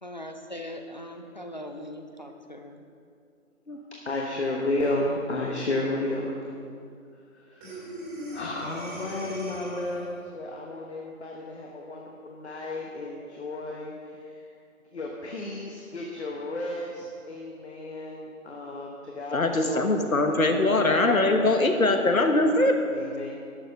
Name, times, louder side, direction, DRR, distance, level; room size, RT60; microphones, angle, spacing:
voice 1, 0.0-2.8 9.0-9.1, left 1 dB, 35° left, 5 dB, 0.5 m, -40 dB
voice 2, 4.0-6.4 7.3-7.8 8.3-14.4 14.9-21.7 22.9-23.3, left 2 dB, 50° left, -1 dB, 1.3 m, -33 dB
Breathing, 7.6-10.2, equal, 15° right, 2.0 m, -39 dB
voice 3, 19.3-22.8, left 2 dB, 80° left, 5 dB, 1.4 m, -22 dB
12.0 x 7.0 x 5.4 m, 2.4 s
figure-of-eight pair, 150°, 41 cm